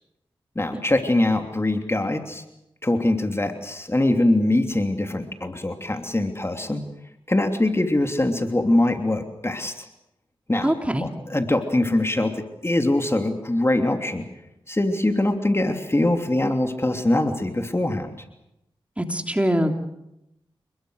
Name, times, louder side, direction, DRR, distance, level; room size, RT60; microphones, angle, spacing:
voice 1, 0.5-2.4 2.8-6.8 7.3-9.9 10.5-10.7 11.0-14.2 14.7-18.1, left 1 dB, 25° left, 5 dB, 3.0 m, -23 dB
voice 2, 10.6-11.0 19.0-19.7, equal, 15° right, 4 dB, 3.3 m, -23 dB
28.5 x 21.5 x 6.5 m, 0.86 s
cardioid pair, 45°, 10 cm